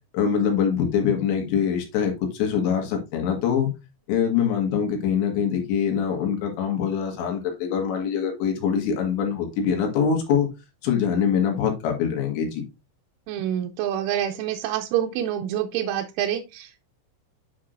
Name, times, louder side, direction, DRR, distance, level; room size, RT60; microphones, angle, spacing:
voice 1, 0.1-3.7 4.1-10.5 10.8-12.6, left 7 dB, 70° left, 3.8 m, -24 dB
voice 2, 13.3-16.8, right 11 dB, 85° right, 3.1 m, -27 dB
9.4 x 5.9 x 2.5 m
omnidirectional pair, 5.5 m